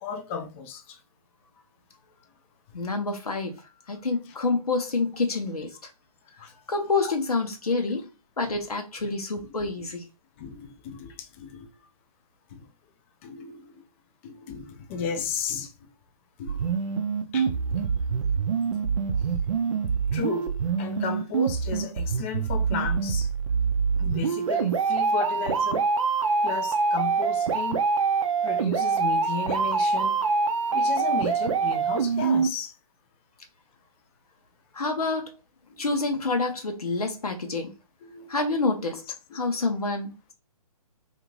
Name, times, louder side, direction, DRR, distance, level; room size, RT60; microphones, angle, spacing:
voice 1, 0.0-1.0 6.4-6.5 8.5-8.6 9.6-9.9 10.4-11.7 12.5-12.6 13.2-13.8 14.2-15.9 16.4-16.8 17.3-17.7 20.1-23.3 24.0-25.8 26.4-27.8 28.4-30.2 30.7-32.7 35.7-35.9 38.0-38.3 39.3-39.5, left 6 dB, 20° left, 0.4 m, -35 dB
voice 2, 2.7-3.6 3.9-5.9 6.7-8.1 8.4-10.0 34.7-35.3 35.8-37.7 38.3-39.0 39.3-40.3, left 3 dB, 85° left, 0.7 m, -27 dB
sound 1, 16.5-32.5, right 5 dB, 60° right, 0.5 m, -25 dB
2.5 x 2.5 x 3.1 m
figure-of-eight pair, 135°, 19 cm